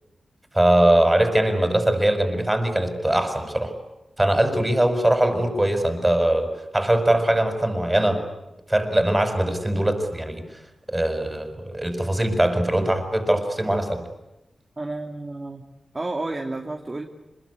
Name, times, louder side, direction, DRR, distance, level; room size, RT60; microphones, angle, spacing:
voice 1, 0.5-3.7 4.2-8.2 8.7-10.6 10.9-14.0, right 1 dB, 15° right, 7 dB, 6.2 m, -21 dB
voice 2, 14.8-15.6 15.9-17.0, right 2 dB, 30° right, 2 dB, 2.6 m, -31 dB
27.0 x 22.0 x 9.8 m, 0.96 s
wide cardioid pair, 85°, 0 cm